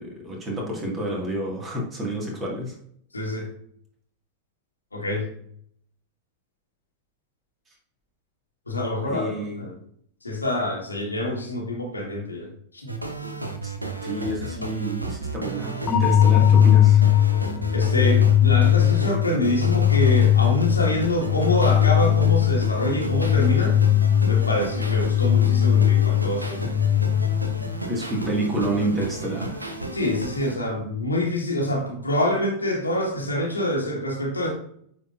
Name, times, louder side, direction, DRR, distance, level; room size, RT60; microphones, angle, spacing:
voice 1, 0.0-2.7 9.0-9.6 13.6-13.7 14.0-17.1 27.9-29.7, right 1 dB, 20° right, -1 dB, 1.9 m, -29 dB
voice 2, 3.1-3.5 4.9-5.3 8.7-9.3 9.6-9.7 10.2-12.9 17.7-23.8 24.2-26.7 29.9-34.5, left 1 dB, 80° left, -1 dB, 1.5 m, -26 dB
sound 1, 12.9-30.5, right 2 dB, 85° right, 0.8 m, -33 dB
sound 2, 15.9-27.8, left 10 dB, 30° left, 0.4 m, -19 dB
9.0 x 4.3 x 2.5 m, 0.66 s
figure-of-eight pair, 90°, 0 cm